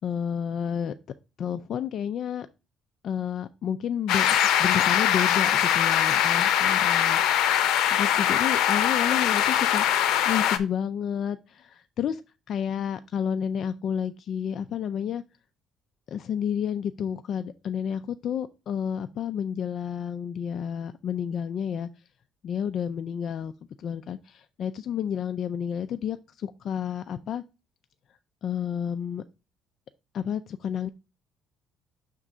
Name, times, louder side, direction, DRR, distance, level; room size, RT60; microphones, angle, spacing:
voice 1, 0.0-0.9 1.4-2.5 3.0-4.3 4.6-7.2 7.9-10.0 10.3-12.2 12.5-15.2 16.1-21.9 22.4-23.5 23.8-27.4 28.4-29.2 30.1-30.9, left 8 dB, 45° left, 10 dB, 0.3 m, -30 dB
sound 1, 4.1-10.6, left 10 dB, 85° left, 0.6 m, -22 dB
6.0 x 3.7 x 5.4 m, 0.28 s
cardioid pair, 155°, 0 cm